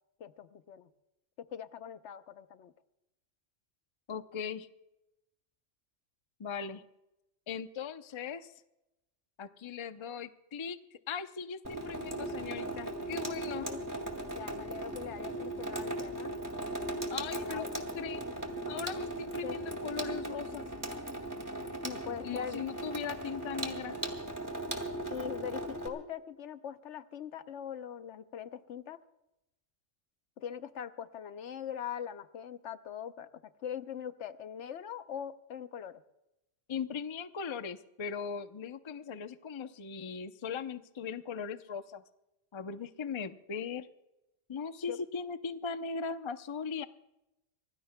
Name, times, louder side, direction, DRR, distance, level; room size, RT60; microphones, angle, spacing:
voice 1, 0.2-0.9 1.4-2.7 13.6-13.8 14.3-16.3 17.3-17.7 19.4-19.6 21.8-22.6 25.1-29.0 30.4-33.3 33.6-36.0 44.9-45.0, left 8 dB, 75° left, 11 dB, 1.0 m, -42 dB
voice 2, 4.1-4.7 6.4-6.8 7.5-8.5 9.4-13.7 17.1-18.3 18.6-20.7 22.2-24.0 36.7-42.0 42.5-43.9 44.5-46.8, left 6 dB, 35° left, 10 dB, 0.5 m, -39 dB
Water tap faucet / Sink (filling or washing), 11.6-25.9, right 1 dB, 15° right, 2.0 m, -38 dB
25.5 x 18.5 x 2.2 m, 0.93 s
omnidirectional pair, 1.3 m